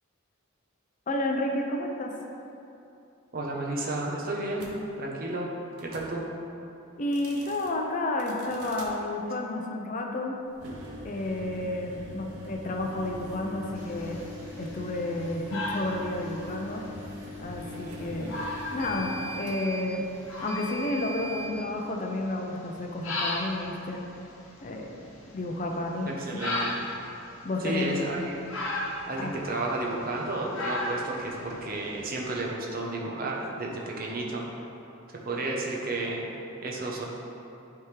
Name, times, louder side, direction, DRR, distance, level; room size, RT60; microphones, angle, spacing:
voice 1, 1.1-2.1 7.0-10.4 11.0-14.2 14.6-16.8 17.4-18.4 18.7-20.0 20.4-24.0 24.6-24.9 25.3-26.4 27.4-28.2 29.2-29.4, left 2 dB, 35° left, 1 dB, 0.5 m, -31 dB
voice 2, 3.3-4.7 5.0-5.5 5.8-6.3 26.0-26.8 27.6-28.4 29.1-34.4 35.2-36.2 36.6-37.1, right 2 dB, 40° right, -1 dB, 0.8 m, -32 dB
sound 1, 4.6-4.7 5.7-6.1 7.0-7.7 8.2-8.9 10.5-21.5, equal, 85° right, 0.8 m, -41 dB
sound 2, 13.8-32.5, left 1 dB, 70° left, 1.0 m, -38 dB
9.5 x 3.5 x 3.2 m, 2.8 s
head